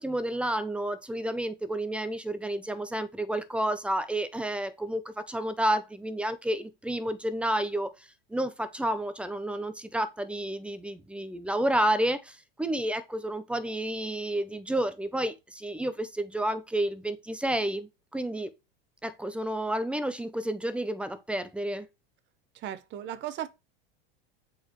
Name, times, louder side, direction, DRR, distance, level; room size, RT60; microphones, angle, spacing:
voice 1, 0.0-18.5 19.0-21.9, right 1 dB, 5° right, 0.4 m, -30 dB
voice 2, 22.6-23.5, right 11 dB, 40° right, 0.8 m, -36 dB
7.8 x 4.0 x 3.0 m
supercardioid pair, 125°, 29 cm